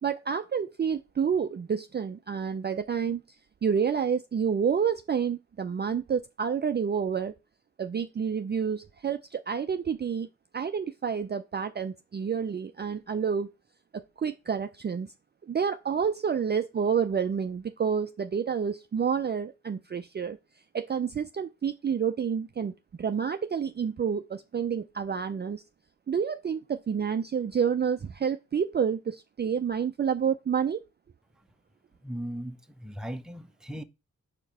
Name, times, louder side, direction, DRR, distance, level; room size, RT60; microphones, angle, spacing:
voice 1, 0.0-3.2 3.6-7.3 7.8-10.3 10.5-13.5 13.9-15.1 15.4-20.4 20.7-25.6 26.1-30.8, right 7 dB, 30° right, 0.4 m, -29 dB
voice 2, 32.0-33.8, equal, ahead, 0.7 m, -37 dB
4.6 x 4.5 x 5.4 m
cardioid pair, 60°, 34 cm